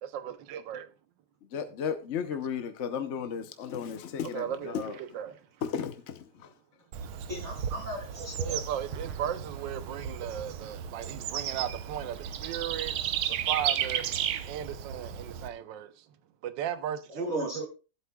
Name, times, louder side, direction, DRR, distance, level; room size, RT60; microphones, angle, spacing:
voice 1, 0.0-0.9 4.3-5.4 8.4-13.0 13.5-14.0 14.5-16.0 16.4-17.6, right 10 dB, 65° right, 1.4 m, -36 dB
voice 2, 1.5-5.0 5.6-6.5, left 7 dB, 65° left, 0.7 m, -34 dB
Bird / Insect, 6.9-15.5, right 9 dB, 85° right, 1.6 m, -34 dB
voice 3, 7.3-8.6 17.1-17.7, right 1 dB, 40° right, 2.8 m, -36 dB
14.0 x 8.0 x 2.3 m
omnidirectional pair, 2.3 m